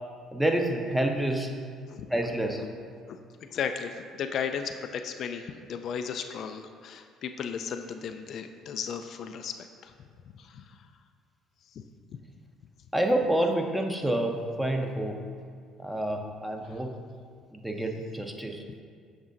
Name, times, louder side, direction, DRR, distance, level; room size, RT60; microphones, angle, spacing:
voice 1, 0.3-1.5 2.1-2.6 12.9-15.2 15.8-17.0 17.5-18.6, right 1 dB, 5° right, 3 dB, 0.7 m, -28 dB
voice 2, 3.5-9.9 10.4-10.6, left 7 dB, 60° left, 6 dB, 0.3 m, -35 dB
7.1 x 6.0 x 2.6 m, 2.2 s
supercardioid pair, 65°, 0 cm